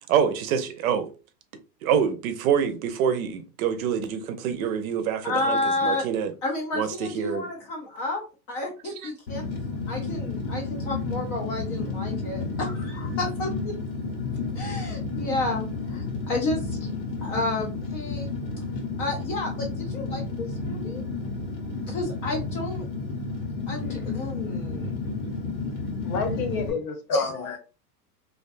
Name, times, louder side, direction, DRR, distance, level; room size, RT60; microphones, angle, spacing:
voice 1, 0.1-1.1 1.8-6.3 6.7-7.5 9.0-9.1, right 8 dB, 60° right, 0.6 m, -26 dB
voice 2, 5.2-6.1 6.4-9.4 9.9-13.7 14.5-16.9 17.2-18.3 19.0-21.0 21.9-22.9 23.7-25.0 27.1-27.6, left 2 dB, 35° left, 0.4 m, -31 dB
Fire, 9.3-26.7, left 3 dB, 85° left, 1.2 m, -31 dB
voice 3, 26.0-27.6, left 5 dB, 55° left, 0.9 m, -30 dB
2.5 x 2.2 x 2.4 m
hypercardioid pair, 120°, 50 cm